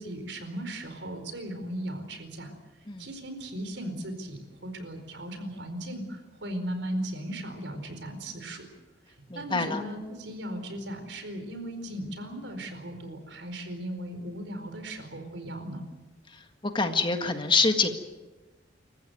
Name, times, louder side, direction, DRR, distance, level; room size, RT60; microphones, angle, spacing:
voice 1, 0.0-2.5 3.0-8.7 9.3-15.8, right 1 dB, 75° right, 8 dB, 4.5 m, -37 dB
voice 2, 9.3-9.8 16.7-17.9, left 4 dB, 25° left, 6 dB, 1.8 m, -25 dB
27.5 x 15.0 x 9.5 m, 1.2 s
head